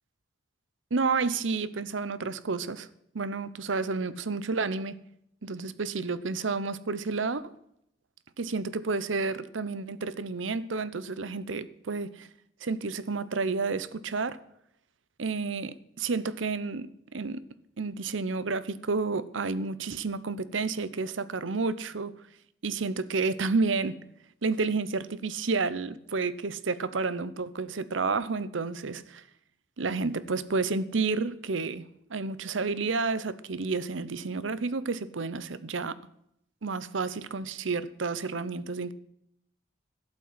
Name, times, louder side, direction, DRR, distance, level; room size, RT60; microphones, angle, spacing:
voice 1, 0.9-2.9 3.1-5.0 5.4-7.5 8.4-12.3 12.6-14.4 15.2-17.4 17.8-22.1 22.6-24.0 24.4-29.2 29.8-36.0 36.6-38.9, right 4 dB, 85° right, 0.8 m, -30 dB
12.0 x 8.6 x 7.5 m
head